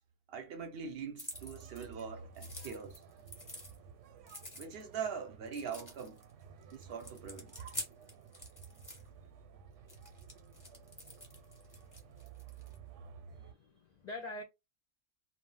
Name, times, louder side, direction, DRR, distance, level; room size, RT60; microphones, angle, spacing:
voice 1, 0.3-3.0 4.5-6.2 6.7-7.6, right 6 dB, 65° right, 0.7 m, -42 dB
sound 1, 1.2-2.0 2.3-3.8 4.2-4.9 5.5-6.3 6.7-9.1 9.9-12.8, left 1 dB, 20° left, 0.8 m, -47 dB
sound 2, 1.3-13.5, right 6 dB, 85° right, 1.0 m, -54 dB
voice 2, 13.3-14.4, left 2 dB, 65° left, 0.4 m, -45 dB
2.3 x 2.0 x 3.7 m
omnidirectional pair, 1.2 m